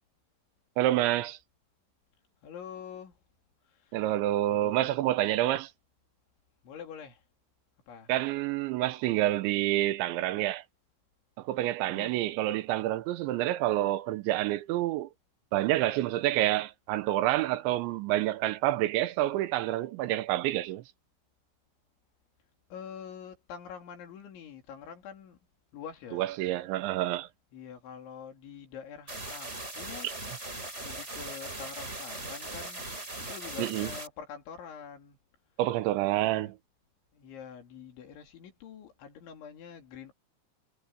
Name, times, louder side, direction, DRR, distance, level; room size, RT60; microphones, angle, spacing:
voice 1, 0.8-1.4 3.9-5.7 8.1-10.6 11.4-15.1 15.5-20.8 26.1-27.3 30.0-30.1 33.6-33.9 35.6-36.6, right 15 dB, 80° right, 3.2 m, -28 dB
voice 2, 2.4-3.2 3.7-4.0 4.5-4.9 5.4-5.6 6.6-7.2 7.9-8.1 11.8-12.2 22.7-25.4 25.7-26.3 27.5-30.1 30.8-32.9 33.2-35.2 36.2-36.5 37.1-40.1, left 7 dB, 80° left, 5.6 m, -45 dB
sound 1, 29.1-34.1, right 2 dB, 15° right, 5.2 m, -39 dB
omnidirectional pair, 5.3 m